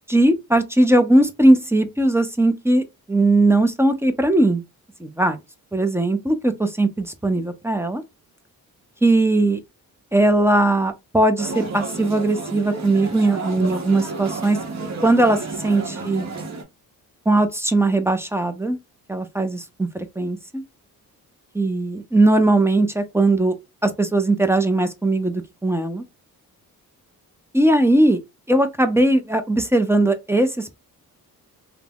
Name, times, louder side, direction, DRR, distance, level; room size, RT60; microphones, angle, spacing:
voice 1, 0.1-4.6 5.0-5.4 5.7-8.0 9.0-9.6 10.1-14.6 15.0-16.3 17.3-18.8 19.1-20.6 21.5-23.5 23.8-26.0 27.5-28.2 28.5-30.8, right 2 dB, 5° right, 0.4 m, -19 dB
sound 1, 11.4-16.6, right 3 dB, 45° right, 0.8 m, -31 dB
3.2 x 2.0 x 2.2 m
cardioid pair, 70°, 37 cm